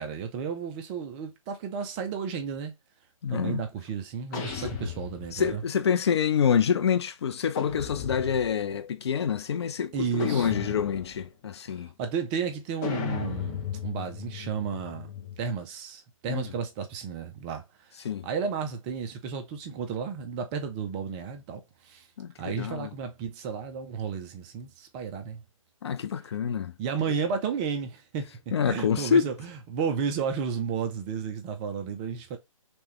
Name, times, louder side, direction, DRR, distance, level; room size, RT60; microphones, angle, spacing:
voice 1, 0.0-2.7 3.3-5.6 9.9-10.5 12.0-15.1 15.4-17.6 18.2-22.0 22.4-25.4 26.8-28.3 28.7-32.4, right 6 dB, 15° right, 0.4 m, -32 dB
voice 2, 3.2-3.6 4.5-4.7 5.3-11.9 16.3-16.5 18.0-18.3 22.2-22.9 25.8-26.7 28.5-29.2, left 7 dB, 50° left, 0.4 m, -27 dB
sound 1, 4.3-5.6 7.5-8.6 10.2-11.3 12.8-15.5, left 7 dB, 30° left, 1.0 m, -35 dB
3.3 x 3.1 x 3.0 m
figure-of-eight pair, 140°, 18 cm